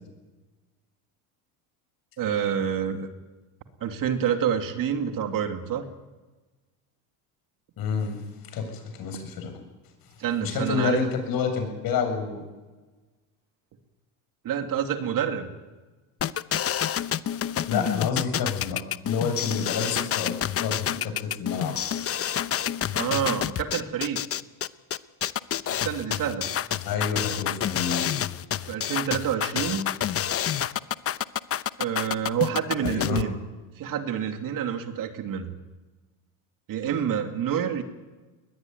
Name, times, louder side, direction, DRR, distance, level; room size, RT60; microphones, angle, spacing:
voice 1, 2.2-3.1 3.8-5.9 10.2-11.1 14.4-15.5 22.9-24.2 25.7-26.5 28.6-29.9 31.8-33.4 33.8-35.5 36.7-37.8, right 8 dB, 55° right, 6 dB, 2.8 m, -28 dB
voice 2, 7.8-8.2 8.5-9.5 10.4-12.4 17.7-21.8 26.8-28.1 32.8-33.2, left 6 dB, 60° left, 6 dB, 7.5 m, -29 dB
sound 1, 16.2-33.2, left 10 dB, 35° left, 0.9 m, -28 dB
21.0 x 20.5 x 9.5 m, 1.2 s
supercardioid pair, 100°, 40 cm